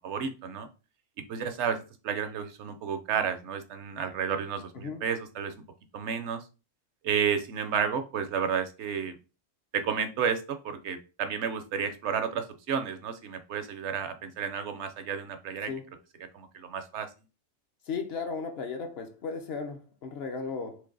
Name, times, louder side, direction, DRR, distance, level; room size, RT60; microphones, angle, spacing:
voice 1, 0.0-0.7 1.3-5.5 5.9-6.4 7.0-9.1 9.7-15.7 16.3-17.1, right 7 dB, 70° right, 0.8 m, -31 dB
voice 2, 17.9-20.8, left 5 dB, 60° left, 0.8 m, -35 dB
3.3 x 3.1 x 3.8 m
omnidirectional pair, 1.3 m